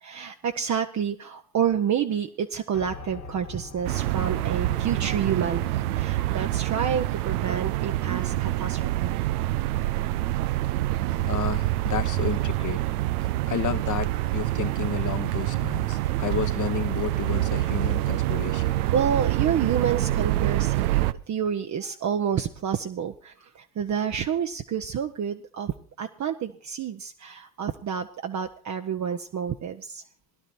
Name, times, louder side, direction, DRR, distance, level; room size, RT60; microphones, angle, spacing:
voice 1, 0.0-9.2 18.9-21.0 21.3-30.0, right 8 dB, 40° right, 5 dB, 0.9 m, -29 dB
Piano, 2.7-10.7, left 4 dB, 85° left, 2.6 m, -46 dB
sound 1, 3.8-21.1, right 15 dB, 85° right, 0.6 m, -26 dB
voice 2, 11.2-12.8 13.5-18.8, left 8 dB, 45° left, 11 dB, 1.2 m, -31 dB
18.0 x 11.5 x 4.3 m, 0.43 s
hypercardioid pair, 55°, 43 cm